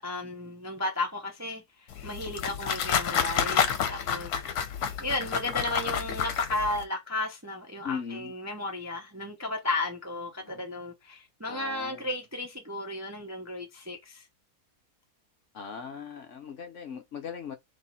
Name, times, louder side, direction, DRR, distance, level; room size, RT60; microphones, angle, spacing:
voice 1, 0.0-4.4 5.0-14.3, left 2 dB, 15° right, 0.5 m, -34 dB
sound 1, 1.9-6.8, left 7 dB, 80° left, 1.3 m, -29 dB
voice 2, 7.8-8.3 10.4-10.6 11.5-12.1 15.5-17.6, left 6 dB, 60° left, 1.0 m, -39 dB
3.5 x 3.1 x 4.1 m
omnidirectional pair, 1.6 m